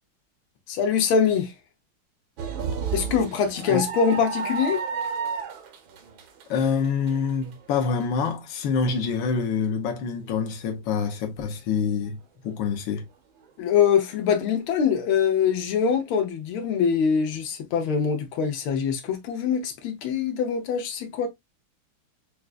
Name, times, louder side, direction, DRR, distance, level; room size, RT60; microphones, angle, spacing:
voice 1, 0.7-1.5 2.9-4.8 13.6-21.3, left 7 dB, 90° left, 1.7 m, -23 dB
sound 1, 2.4-8.5 9.0-9.1 10.3-10.5, right 6 dB, 75° right, 1.7 m, -32 dB
voice 2, 6.5-12.2 12.4-13.0, left 6 dB, 70° left, 1.6 m, -26 dB
6.2 x 2.3 x 2.4 m
omnidirectional pair, 2.2 m